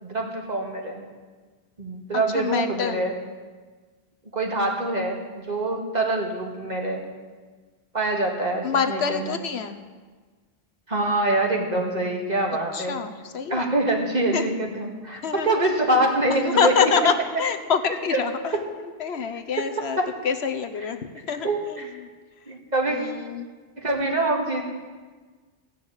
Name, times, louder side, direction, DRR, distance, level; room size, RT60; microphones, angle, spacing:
voice 1, 0.0-1.0 1.8-3.1 4.3-7.0 7.9-9.4 10.9-13.0 13.5-16.9 18.1-18.2 20.0-20.1 21.4-21.9 22.5-23.0 23.8-24.6, right 2 dB, 40° right, 0 dB, 2.1 m, -25 dB
voice 2, 2.3-3.1 8.6-9.8 12.7-13.7 14.3-14.5 15.2-15.5 16.3-17.1 17.4-18.6 19.0-20.0 20.2-21.0 21.3-21.8 22.9-23.5, left 6 dB, 75° left, 8 dB, 1.1 m, -26 dB
15.5 x 6.3 x 8.6 m, 1.4 s
omnidirectional pair, 1.1 m